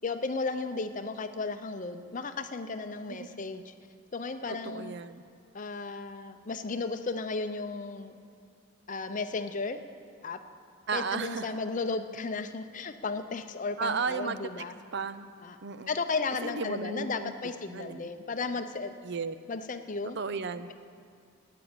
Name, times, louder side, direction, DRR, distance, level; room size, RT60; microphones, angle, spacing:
voice 1, 0.0-3.7 4.1-4.9 5.5-8.1 8.9-9.8 10.2-10.4 10.9-14.7 15.4-15.6 15.9-19.0 19.5-20.2, left 4 dB, 40° left, 8 dB, 0.7 m, -34 dB
voice 2, 3.1-3.4 4.6-5.2 10.9-11.5 13.8-14.7 14.9-15.3 15.6-15.9 16.4-17.3 17.7-18.0 19.0-19.4 20.0-20.7, right 5 dB, 55° right, 12 dB, 0.5 m, -34 dB
13.0 x 9.3 x 8.8 m, 2.3 s
head